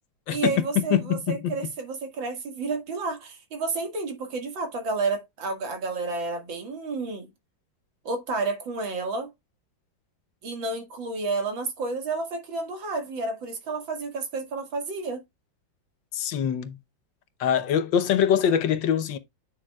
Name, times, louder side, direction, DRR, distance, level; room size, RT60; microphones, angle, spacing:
voice 1, 0.3-7.3 8.0-9.3 10.4-15.2, right 3 dB, 85° right, 2.6 m, -30 dB
voice 2, 0.9-1.5 16.1-16.8 17.4-19.2, left 9 dB, 80° left, 1.5 m, -23 dB
8.8 x 6.6 x 2.3 m
omnidirectional pair, 2.0 m